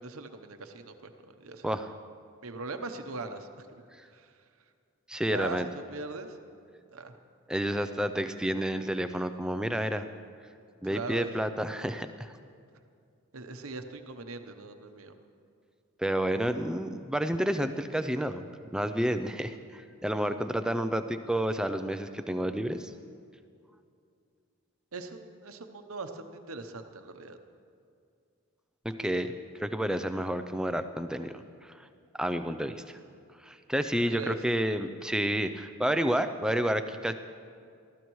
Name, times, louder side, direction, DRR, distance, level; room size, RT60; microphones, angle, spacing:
voice 1, 0.0-1.8 2.4-4.4 5.3-6.4 6.9-7.1 10.9-11.3 13.3-15.1 24.9-27.4 34.0-34.4, right 3 dB, 75° right, 7 dB, 0.9 m, -41 dB
voice 2, 5.1-5.7 7.5-10.1 10.8-12.3 16.0-18.4 18.7-22.9 28.8-31.9 32.2-33.0 33.4-37.1, right 1 dB, 5° right, 9 dB, 0.4 m, -30 dB
20.5 x 14.5 x 3.1 m, 2.4 s
head